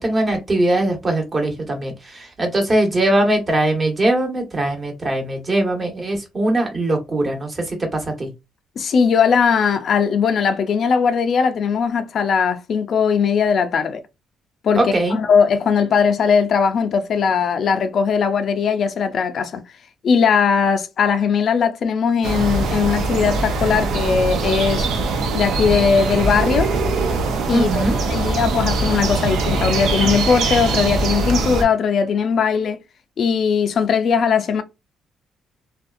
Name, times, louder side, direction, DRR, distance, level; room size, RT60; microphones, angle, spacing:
voice 1, 0.0-8.3 14.8-15.2 27.5-28.0, right 1 dB, 35° right, 1.2 m, -21 dB
voice 2, 8.8-14.0 14.6-19.6 20.0-24.9 25.3-26.7 27.5-32.8 33.2-34.6, left 6 dB, 60° left, 0.4 m, -19 dB
sound 1, 22.2-31.6, right 3 dB, 75° right, 0.6 m, -22 dB
2.6 x 2.3 x 2.4 m
supercardioid pair, 70°, 0 cm